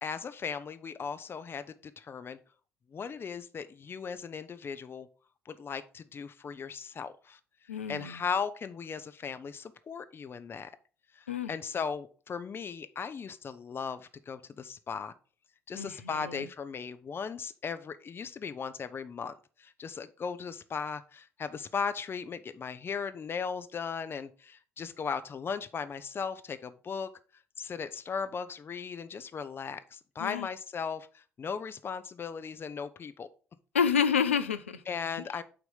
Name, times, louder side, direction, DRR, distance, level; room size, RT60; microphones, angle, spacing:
voice 1, 0.0-2.4 2.9-5.1 5.5-7.4 7.9-10.7 11.1-15.1 15.7-19.3 19.6-27.1 27.6-33.3 34.9-35.4, left 6 dB, 35° left, 0.7 m, -37 dB
voice 2, 7.7-8.2 11.3-11.5 15.7-16.5 30.2-30.5 33.7-34.8 35.2-35.3, left 7 dB, 85° left, 0.4 m, -29 dB
8.6 x 3.0 x 5.5 m
figure-of-eight pair, 50°, 7 cm